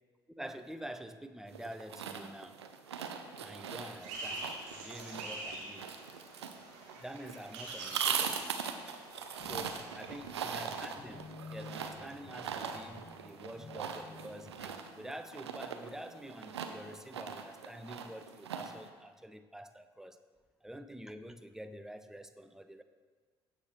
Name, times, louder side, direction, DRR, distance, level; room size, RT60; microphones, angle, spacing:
voice 1, 0.4-2.6 3.4-5.9 7.0-8.4 9.4-20.2 20.6-22.8, right 1 dB, 5° right, 9 dB, 0.6 m, -47 dB
sound 1, 1.5-18.9, right 7 dB, 80° right, 0.6 m, -41 dB
sound 2, 4.0-10.9, right 2 dB, 55° right, 2.8 m, -46 dB
sound 3, 9.4-14.8, left 4 dB, 35° left, 1.4 m, -52 dB
15.5 x 6.3 x 3.1 m, 1.5 s
figure-of-eight pair, 55°, 14 cm